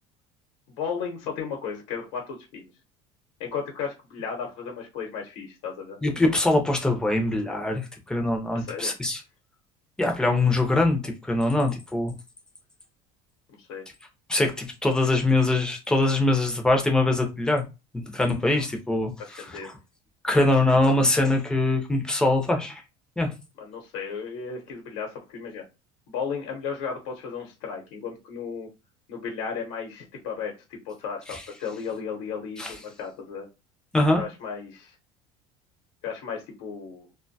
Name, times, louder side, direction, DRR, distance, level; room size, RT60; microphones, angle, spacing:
voice 1, 0.7-2.7 3.4-6.0 8.5-8.9 13.5-13.8 19.2-19.7 23.6-25.6 26.1-28.7 29.1-33.5 34.2-34.9 36.0-37.1, left 6 dB, 85° left, 0.8 m, -34 dB
voice 2, 6.0-9.2 10.0-12.1 14.3-17.6 17.9-19.6 20.2-22.8 23.2-23.3 31.3-31.4 32.6-32.7 33.9-34.2, left 2 dB, 5° left, 0.4 m, -23 dB
2.5 x 2.2 x 2.6 m
cardioid pair, 170°, 14 cm